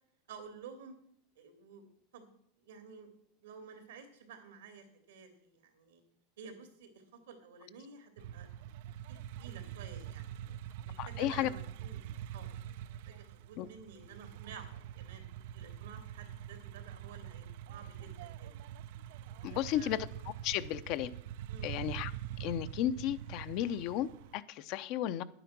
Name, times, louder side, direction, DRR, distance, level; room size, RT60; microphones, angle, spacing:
voice 1, 0.3-1.0 1.4-1.8 2.1-3.1 3.4-6.0 6.4-8.5 9.1-10.5 10.9-12.0 12.3-12.5 13.1-15.2 15.5-18.5 19.4-19.9 21.5-21.7, right 5 dB, 90° right, 2.9 m, -52 dB
sound 1, 8.2-24.4, right 11 dB, 70° right, 0.5 m, -44 dB
voice 2, 11.0-11.5 13.6-13.7 19.4-20.1 20.4-21.1 21.6-22.1 22.4-25.2, left 12 dB, 55° left, 0.7 m, -34 dB
10.5 x 9.0 x 6.1 m
supercardioid pair, 125°, 0 cm